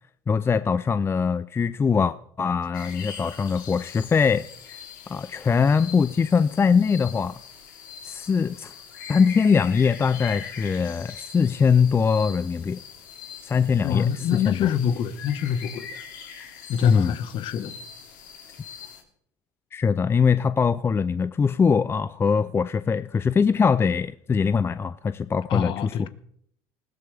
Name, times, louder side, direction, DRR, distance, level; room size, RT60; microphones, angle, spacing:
voice 1, 0.3-4.8 5.1-7.4 8.0-8.7 9.1-12.8 13.4-14.7 16.8-17.2 19.7-26.1, left 6 dB, 25° left, 14 dB, 0.5 m, -22 dB
sound 1, 2.7-19.0, left 7 dB, 85° left, 2.7 m, -42 dB
voice 2, 13.8-16.0 16.7-17.7 25.5-26.1, left 8 dB, 55° left, 12 dB, 1.3 m, -26 dB
20.5 x 16.0 x 3.5 m, 0.68 s
hypercardioid pair, 75°, 10 cm